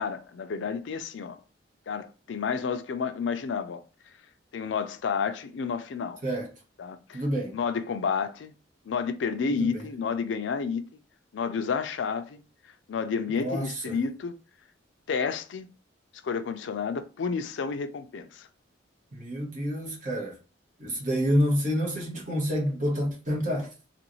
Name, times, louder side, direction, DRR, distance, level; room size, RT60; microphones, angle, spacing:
voice 1, 0.0-1.4 1.9-3.8 4.5-6.2 6.8-7.2 7.5-8.5 8.9-11.0 11.3-12.4 12.9-14.3 15.1-15.7 16.2-18.5, left 5 dB, 75° left, 0.4 m, -30 dB
voice 2, 7.1-7.5 13.4-14.0 19.1-20.3 20.8-23.7, equal, 45° right, 1.0 m, -28 dB
3.0 x 2.5 x 3.0 m
head